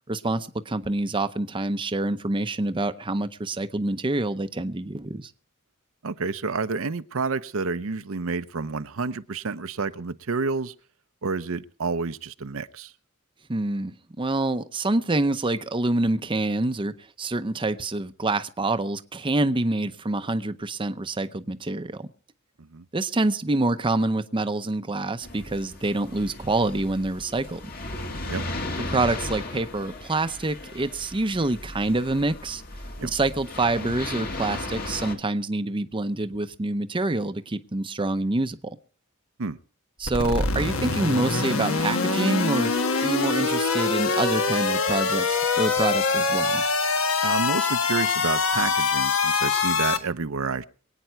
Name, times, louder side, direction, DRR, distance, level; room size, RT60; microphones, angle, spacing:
voice 1, 0.1-5.3 13.5-22.1 22.9-27.6 28.9-32.6 33.0-38.8 40.0-42.7 43.0-46.6, right 2 dB, 25° right, 0.7 m, -26 dB
voice 2, 6.0-10.7 11.2-12.9 22.6-22.8 28.3-28.5 33.0-33.1 39.4-39.6 47.2-50.6, right 4 dB, 70° right, 0.7 m, -29 dB
sound 1, 25.2-35.1, left 2 dB, 50° left, 2.1 m, -36 dB
sound 2, 40.0-50.0, left 4 dB, 70° left, 1.4 m, -24 dB
24.0 x 9.2 x 4.6 m
head